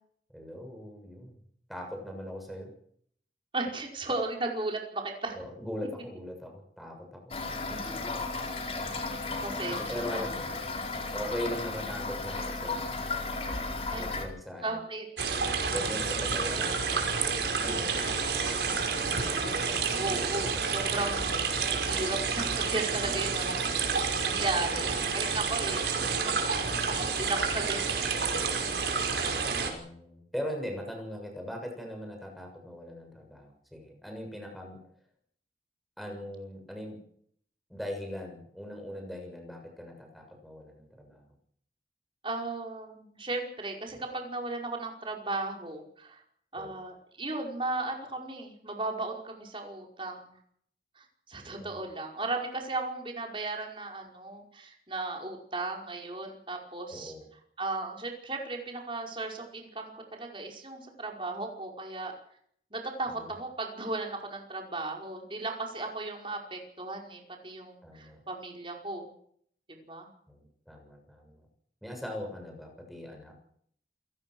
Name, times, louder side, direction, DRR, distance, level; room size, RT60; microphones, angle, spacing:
voice 1, 0.3-1.4 1.7-2.7 5.3-7.3 7.7-8.1 9.8-10.5 11.1-12.9 13.9-14.8 15.7-18.9 24.8-24.9 29.1-34.8 36.0-37.0 37.7-41.2 46.5-46.8 51.4-51.8 56.9-57.3 63.1-63.3 67.8-68.2 70.3-71.4 71.8-73.3, left 1 dB, ahead, 2 dB, 6.9 m, -40 dB
voice 2, 3.5-5.4 7.7-7.8 9.4-10.3 13.9-14.1 14.6-15.1 20.0-23.6 24.3-25.9 26.2-28.2 36.0-36.1 42.2-46.2 46.5-50.4 51.0-57.1 57.6-62.1 62.7-69.1 69.7-70.1, right 2 dB, 30° right, 1 dB, 5.2 m, -36 dB
Toilet flush / Fill (with liquid), 7.3-14.3, left 3 dB, 35° left, 4.2 m, -34 dB
sound 1, 15.2-29.7, right 5 dB, 80° right, 5.3 m, -29 dB
28.0 x 17.0 x 6.4 m, 0.65 s
head